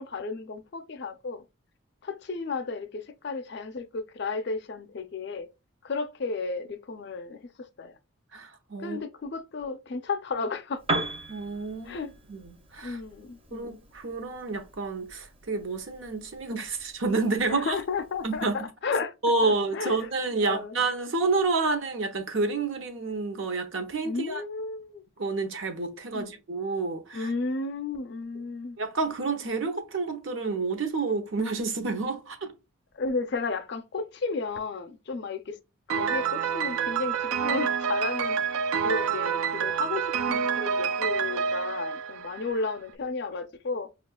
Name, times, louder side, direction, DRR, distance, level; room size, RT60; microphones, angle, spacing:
voice 1, 0.0-1.4 2.0-5.5 5.8-7.9 8.8-10.8 11.9-12.1 12.8-13.8 17.5-18.5 18.8-19.1 19.4-19.9 20.4-20.7 24.0-25.0 26.1-26.4 27.1-28.8 32.9-35.6 35.9-38.4 38.8-43.9, left 4 dB, 55° left, 0.4 m, -33 dB
voice 2, 8.3-9.0 11.3-12.0 12.3-13.0 13.5-17.7 18.2-18.7 19.2-24.4 25.2-27.3 28.8-32.5, right 3 dB, 70° right, 0.8 m, -29 dB
Piano, 10.8-18.6, right 2 dB, 25° right, 0.6 m, -39 dB
Piano 2, 35.9-42.7, right 6 dB, 90° right, 0.4 m, -28 dB
5.4 x 2.3 x 2.2 m
head